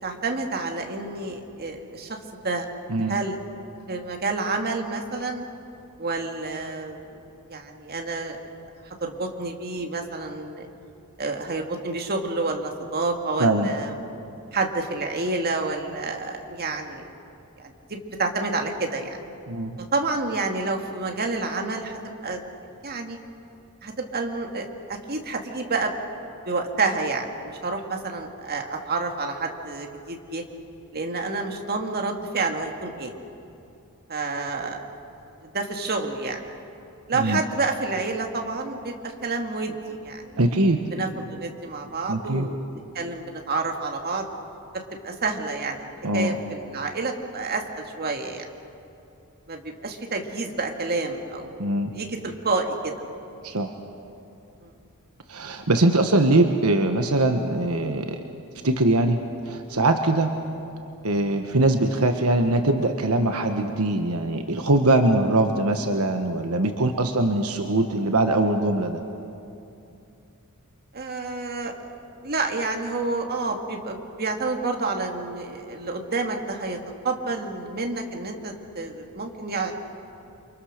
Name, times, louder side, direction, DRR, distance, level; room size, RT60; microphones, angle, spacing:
voice 1, 0.0-2.2 2.4-2.7 3.1-3.4 3.9-5.4 6.0-7.2 7.5-8.5 9.0-10.7 11.2-13.9 14.5-17.1 17.6-19.2 19.9-22.4 22.8-23.2 23.8-25.9 26.5-30.4 30.9-33.1 34.1-34.8 35.4-36.4 37.1-39.0 39.2-40.6 40.9-42.6 42.9-44.3 45.0-45.9 46.1-48.5 49.5-51.7 51.9-52.9 54.6-54.7 70.9-71.7 72.2-76.8 77.0-79.7, right 3 dB, 45° right, 3 dB, 2.2 m, -29 dB
voice 2, 13.4-13.7 19.5-19.8 37.1-37.4 40.4-40.8 42.1-42.5 46.0-46.4 51.6-51.9 53.4-53.7 55.3-58.2 58.6-59.2 59.5-60.3 61.0-69.0, right 2 dB, 75° right, 5 dB, 1.3 m, -22 dB
29.0 x 24.5 x 6.7 m, 2.7 s
head